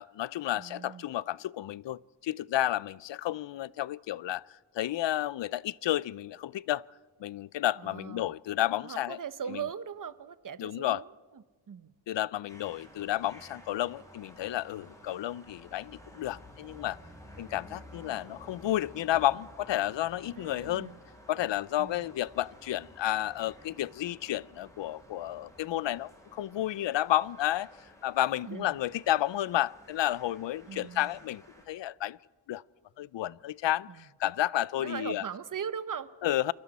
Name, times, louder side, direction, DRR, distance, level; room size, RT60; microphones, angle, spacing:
voice 1, 0.0-6.8 7.2-9.2 10.6-11.0 12.1-17.0 17.4-20.9 21.3-27.7 28.0-32.2 32.5-32.6 33.0-35.2 36.2-36.5, left 13 dB, 70° left, 0.5 m, -31 dB
voice 2, 0.5-1.1 7.8-8.3 8.8-11.9 20.3-21.0 21.8-22.1 28.5-28.8 30.7-31.1 33.9-34.0 34.8-36.1, right 7 dB, 45° right, 1.0 m, -40 dB
sound 1, 12.5-31.6, equal, 5° left, 6.7 m, -53 dB
28.5 x 22.5 x 4.2 m
cardioid pair, 70°, 46 cm